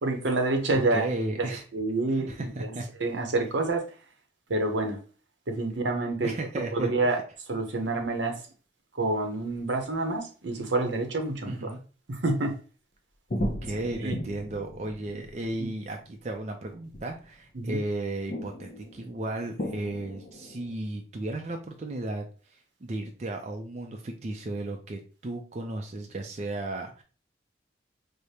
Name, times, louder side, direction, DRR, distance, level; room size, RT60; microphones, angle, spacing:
voice 1, 0.0-1.1 1.4-1.5 1.7-2.5 3.0-3.8 4.5-5.0 5.5-6.3 6.7-7.2 7.5-8.4 9.0-11.7 12.1-12.5 13.8-14.1 15.6-15.7 17.5-17.8, right 2 dB, 80° right, 4 dB, 0.8 m, -27 dB
voice 2, 0.7-1.6 2.1-2.8 6.2-7.2 11.5-11.8 13.4-27.0, right 2 dB, 35° right, 3 dB, 0.4 m, -35 dB
sound 1, 13.3-17.9 18.3-20.8, left 1 dB, 45° left, 0.5 m, -38 dB
4.8 x 2.1 x 2.8 m, 0.38 s
head